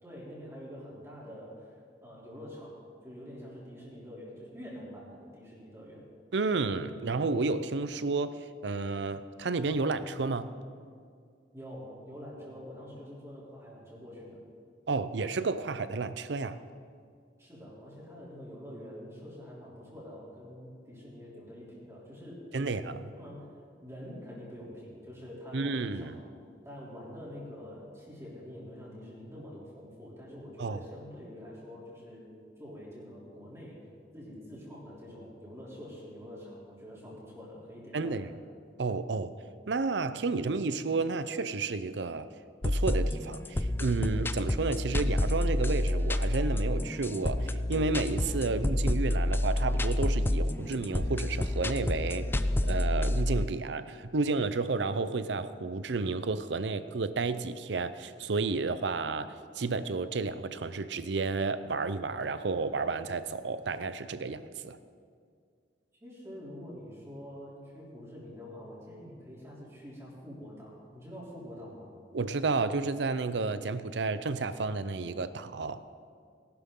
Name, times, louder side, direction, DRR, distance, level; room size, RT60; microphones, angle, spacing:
voice 1, 0.0-6.1 11.5-14.4 17.4-22.8 23.1-23.5 23.8-26.2 26.6-32.3 32.6-33.8 34.1-38.2 66.0-71.9, equal, 15° right, -7 dB, 3.1 m, -46 dB
voice 2, 6.3-10.5 14.9-16.6 22.5-23.0 25.5-26.2 30.6-30.8 37.9-38.3 38.8-39.3 39.7-42.3 42.6-52.3 52.6-64.8 72.1-75.8, right 3 dB, 75° right, 13 dB, 0.6 m, -31 dB
sound 1, 42.6-53.5, left 1 dB, 10° left, 0.3 m, -29 dB
18.5 x 12.0 x 3.8 m, 2.2 s
head